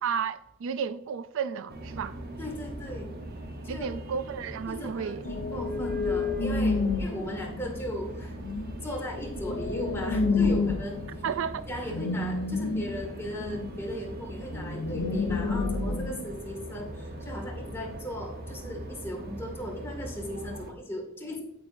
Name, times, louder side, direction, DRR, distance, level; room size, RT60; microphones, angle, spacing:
voice 1, 0.0-2.2 3.7-5.3 11.2-11.7, right 7 dB, 65° right, 0.4 m, -32 dB
sound 1, 1.7-20.7, right 1 dB, 50° right, 1.0 m, -41 dB
voice 2, 2.4-3.1 3.6-3.9 4.7-8.4 8.8-11.0 11.7-21.4, left 1 dB, 10° left, 2.0 m, -37 dB
sound 2, 5.2-16.2, left 3 dB, 70° left, 0.9 m, -30 dB
9.0 x 8.5 x 2.6 m
head